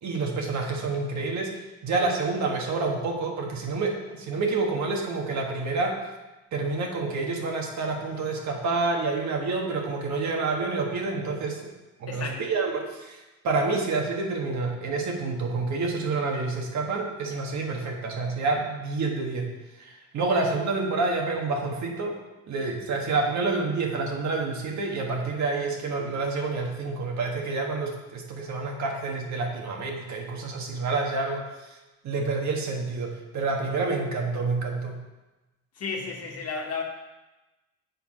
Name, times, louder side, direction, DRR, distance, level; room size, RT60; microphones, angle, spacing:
voice 1, 0.0-6.0 6.5-11.6 12.0-19.5 19.7-22.1 22.5-31.8 32.0-35.0, right 3 dB, 70° right, 0 dB, 1.5 m, -28 dB
voice 2, 12.1-12.4 35.7-36.8, left 4 dB, 55° left, 1 dB, 1.4 m, -32 dB
6.6 x 4.6 x 5.0 m, 1.1 s
cardioid pair, 90°, 30 cm